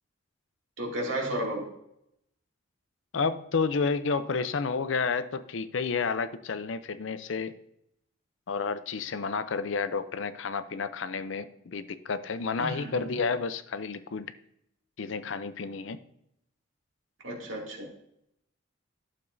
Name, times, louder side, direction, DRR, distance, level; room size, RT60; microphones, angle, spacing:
voice 1, 0.8-1.7 12.6-13.1 17.2-17.9, right 1 dB, 80° right, -1 dB, 2.4 m, -33 dB
voice 2, 3.1-7.5 8.5-14.3 15.0-16.0, left 5 dB, 75° left, 12 dB, 0.6 m, -30 dB
11.5 x 6.9 x 2.7 m, 0.76 s
head